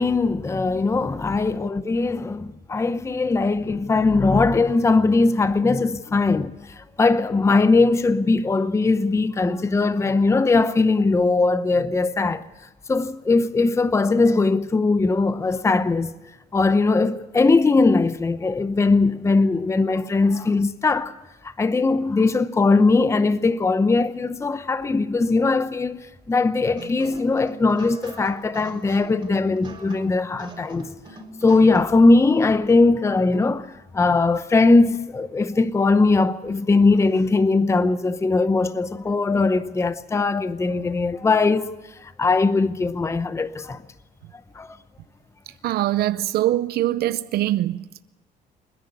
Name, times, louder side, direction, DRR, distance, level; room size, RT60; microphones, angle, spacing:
voice 1, 0.0-12.5 12.9-16.1 16.5-21.2 21.4-30.9 31.4-43.8 44.5-44.8, left 3 dB, 15° left, 0.7 m, -20 dB
sound 1, 26.8-32.1, right 2 dB, 25° right, 3.8 m, -43 dB
voice 2, 45.6-47.8, right 14 dB, 70° right, 0.6 m, -23 dB
27.5 x 10.5 x 9.6 m
cardioid pair, 110°, 17 cm